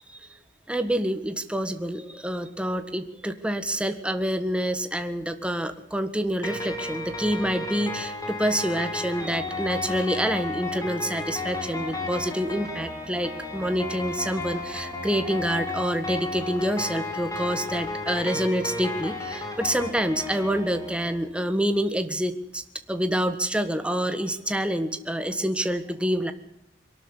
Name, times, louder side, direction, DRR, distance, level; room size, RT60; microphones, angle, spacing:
voice 1, 0.7-22.6 22.9-26.3, equal, 5° right, 8 dB, 1.5 m, -27 dB
sound 1, 6.4-21.2, left 2 dB, 20° left, 4.2 m, -33 dB
22.5 x 12.5 x 9.9 m, 0.82 s
head